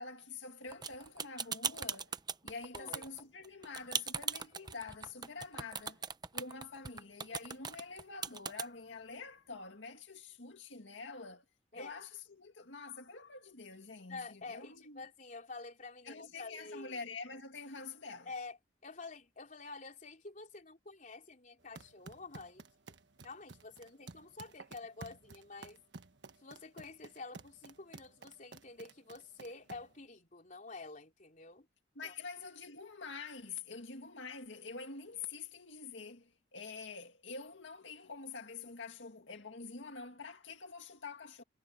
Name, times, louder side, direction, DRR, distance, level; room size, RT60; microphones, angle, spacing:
voice 1, 0.0-2.2 2.4-6.1 6.3-11.4 11.7-15.1 16.0-18.3 32.0-41.4, left 4 dB, 90° left, 2.0 m, -46 dB
sound 1, 0.7-8.7, right 6 dB, 25° right, 0.9 m, -39 dB
voice 2, 2.7-3.0 11.7-11.9 14.1-17.0 18.3-22.7 23.2-25.8 26.4-31.7 32.0-32.1, left 3 dB, 45° left, 3.6 m, -49 dB
sound 2, 21.6-30.0, right 3 dB, 75° right, 1.3 m, -53 dB
head